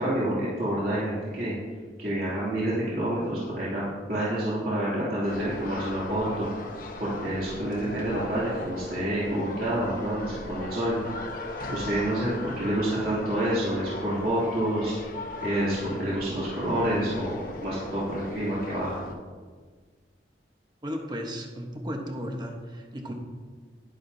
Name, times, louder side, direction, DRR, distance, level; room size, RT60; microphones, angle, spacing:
voice 1, 0.0-1.5 2.0-3.8 4.1-6.5 7.0-11.0 11.7-14.9 15.4-19.0, right 1 dB, 55° right, -9 dB, 2.9 m, -28 dB
sound 1, 5.2-19.1, left 2 dB, 50° left, 1.1 m, -39 dB
voice 2, 20.8-23.1, equal, 25° right, 2 dB, 1.2 m, -35 dB
11.0 x 11.0 x 2.8 m, 1.5 s
head